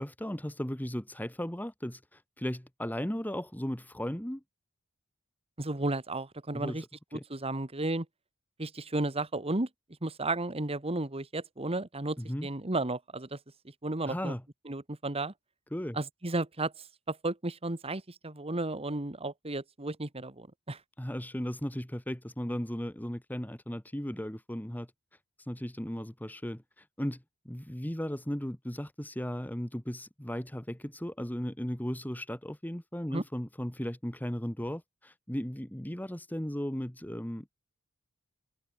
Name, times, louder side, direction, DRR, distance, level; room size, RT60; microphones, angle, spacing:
voice 1, 0.0-4.4 6.5-6.9 7.1-7.2 12.2-12.5 14.1-14.4 15.7-16.0 21.0-24.9 25.4-37.6, equal, 10° left, 1.5 m, -36 dB
voice 2, 5.6-6.8 7.1-8.0 8.6-9.7 10.0-13.4 13.8-14.3 14.7-15.3 15.9-16.7 17.1-20.8 33.1-33.2, right 2 dB, 25° right, 1.6 m, -33 dB
head